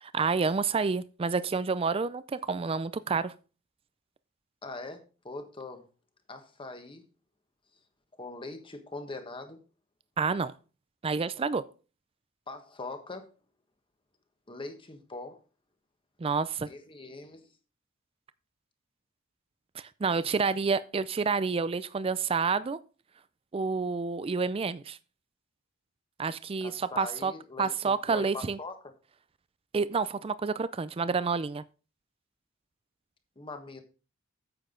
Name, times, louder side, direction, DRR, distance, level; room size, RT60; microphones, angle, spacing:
voice 1, 0.0-3.3 10.2-10.5 11.0-11.6 16.2-16.7 20.0-22.8 23.5-25.0 26.2-27.3 27.6-28.6 29.7-31.6, right 5 dB, 30° right, 15 dB, 0.4 m, -29 dB
voice 2, 4.6-5.8 6.3-7.0 8.2-9.6 12.5-13.3 14.5-15.4 16.7-17.5 26.6-28.8 33.4-33.8, left 3 dB, 25° left, 7 dB, 1.3 m, -42 dB
9.2 x 7.6 x 3.8 m, 0.35 s
head